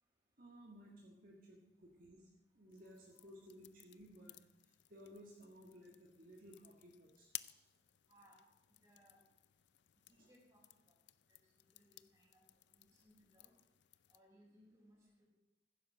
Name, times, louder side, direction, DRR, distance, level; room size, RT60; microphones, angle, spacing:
voice 1, 0.4-2.3 2.6-4.4 4.6-7.7 10.1-10.3, equal, 50° right, -2 dB, 1.9 m, -58 dB
sound 1, 2.7-14.2, left 16 dB, 70° left, 0.5 m, -58 dB
voice 2, 2.8-3.3 8.1-8.5 8.8-9.2 10.1-10.9 11.3-13.5 14.1-15.2, equal, 15° right, -3 dB, 5.2 m, -68 dB
14.5 x 10.5 x 6.4 m, 0.89 s
head